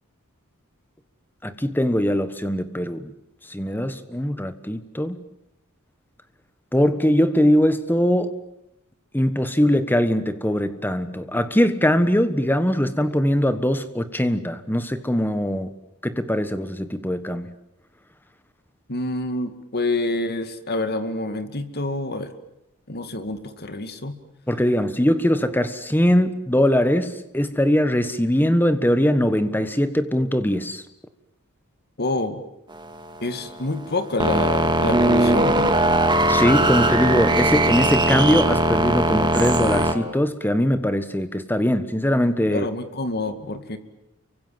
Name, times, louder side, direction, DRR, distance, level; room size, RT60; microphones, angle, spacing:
voice 1, 1.4-3.1 3.5-5.2 6.7-8.3 9.1-15.7 16.0-17.5 24.5-30.8 36.3-42.6, equal, 10° left, 11 dB, 1.4 m, -21 dB
voice 2, 18.9-22.3 22.9-24.1 32.0-32.4 33.2-35.8 42.5-43.8, left 2 dB, 45° left, 9 dB, 2.1 m, -27 dB
sound 1, 32.8-39.9, right 1 dB, 20° right, 2.1 m, -19 dB
29.5 x 24.5 x 7.6 m, 0.83 s
head